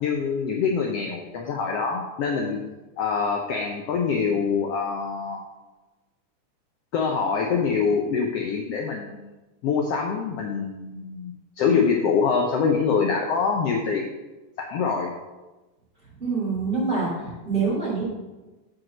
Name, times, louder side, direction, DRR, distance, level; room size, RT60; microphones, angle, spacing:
voice 1, 0.0-2.6 3.0-5.4 6.9-9.3 9.6-14.0 14.6-15.1, left 5 dB, 85° left, 1 dB, 1.3 m, -25 dB
voice 2, 16.2-18.0, right 4 dB, 20° right, -6 dB, 2.4 m, -25 dB
7.6 x 5.0 x 6.1 m, 1.1 s
omnidirectional pair, 3.7 m